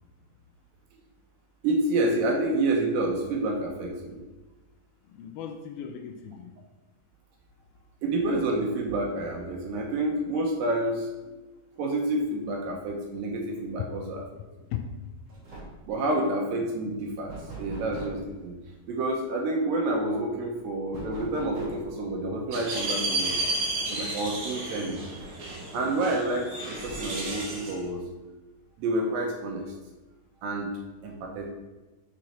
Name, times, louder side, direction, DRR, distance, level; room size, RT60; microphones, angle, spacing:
voice 1, 1.6-4.2 8.0-11.3 11.8-14.3 15.9-18.6 18.9-23.3 23.9-25.0 25.7-28.0 28.8-29.7 30.4-30.7 31.0-31.5, right 2 dB, 75° right, 1 dB, 2.3 m, -28 dB
voice 2, 5.0-6.5 14.7-14.9 16.2-16.4 23.7-23.8 24.9-25.0, left 9 dB, 80° left, 5 dB, 2.3 m, -38 dB
sound 1, 14.8-15.0 15.3-15.9 17.3-18.3 20.9-22.0 23.5-23.6 24.0-24.1 25.1-25.8 26.7-27.3, right 2 dB, 40° right, 2.8 m, -42 dB
sound 2, 22.5-27.8, right 2 dB, 55° right, 1.6 m, -32 dB
6.5 x 6.2 x 4.2 m, 1.2 s
omnidirectional pair, 4.6 m